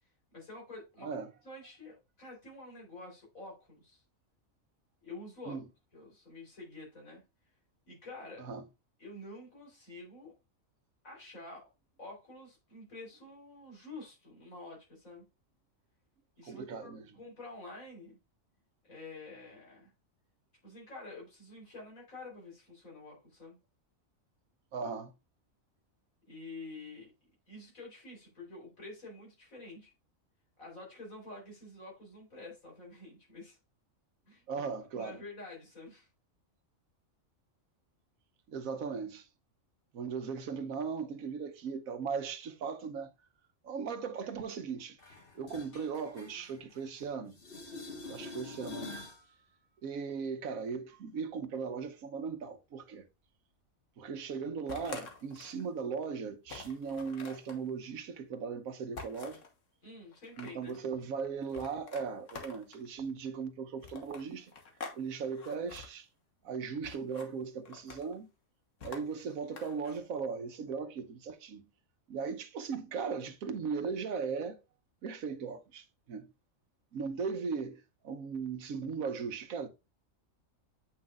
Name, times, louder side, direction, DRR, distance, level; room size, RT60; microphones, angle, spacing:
voice 1, 0.3-1.1 1.4-4.0 5.0-5.6 5.9-7.2 7.9-8.5 9.0-10.3 11.0-11.7 12.0-15.3 16.4-18.2 18.8-19.9 20.6-23.6 26.3-27.1 27.5-29.9 30.6-33.6 34.3-34.6 34.9-36.1 59.8-60.8, left 2 dB, 90° left, 4.3 m, -48 dB
voice 2, 16.4-17.0 24.7-25.1 34.5-35.2 38.5-39.3 39.9-43.1 43.6-45.0 45.3-47.4 48.1-49.1 49.8-53.0 54.0-59.4 60.4-64.5 64.9-66.1 66.4-68.3 68.8-71.7 72.1-74.6 75.0-76.3 76.9-79.7, right 5 dB, 90° right, 1.3 m, -38 dB
sound 1, 45.0-47.0 47.3-49.2 55.0-55.1, left 3 dB, 45° left, 1.7 m, -46 dB
sound 2, 54.7-55.6 56.0-56.1 56.5-57.6 59.0-59.5 60.1-60.8 61.5-62.9 63.8-65.0 65.3-65.9 66.8-67.3 67.7-68.2 68.8-70.0, left 4 dB, 65° left, 1.6 m, -46 dB
8.5 x 5.8 x 2.5 m
omnidirectional pair, 1.4 m